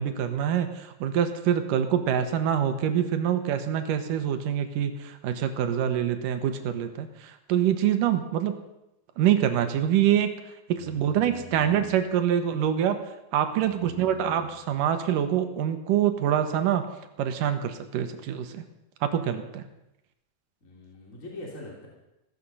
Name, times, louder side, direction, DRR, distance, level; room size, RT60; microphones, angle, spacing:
voice 1, 0.0-8.5 9.2-10.3 10.7-13.0 13.3-16.9 17.2-18.6 19.0-19.6, right 9 dB, 75° right, 8 dB, 2.6 m, -25 dB
voice 2, 10.8-11.9 13.6-14.6 20.6-21.9, left 1 dB, 25° left, -3 dB, 2.9 m, -44 dB
15.0 x 15.0 x 5.6 m, 0.89 s
omnidirectional pair, 4.1 m